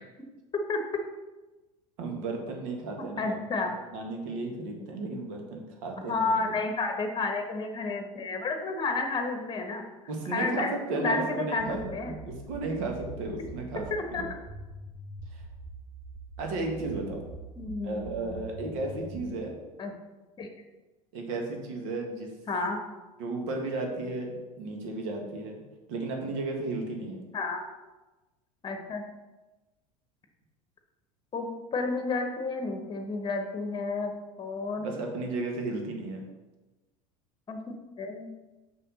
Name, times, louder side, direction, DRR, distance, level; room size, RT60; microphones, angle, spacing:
voice 1, 2.0-6.5 10.1-11.8 12.1-13.8 14.1-14.3 16.4-17.2 17.8-19.5 21.1-22.3 23.2-25.6 25.9-27.2 34.8-36.2, right 2 dB, 60° right, 2 dB, 1.6 m, -34 dB
voice 2, 3.2-3.8 5.2-5.4 6.1-9.9 10.3-12.1 14.1-14.2 17.6-18.4 19.8-19.9 20.4-20.5 22.5-22.8 27.3-27.6 28.6-29.0 31.3-34.1 34.4-34.9 37.5-38.3, left 3 dB, 25° left, 5 dB, 1.2 m, -31 dB
sound 1, 11.6-19.3, right 3 dB, 20° right, 1.3 m, -44 dB
6.2 x 5.7 x 4.1 m, 1.1 s
figure-of-eight pair, 75°, 20 cm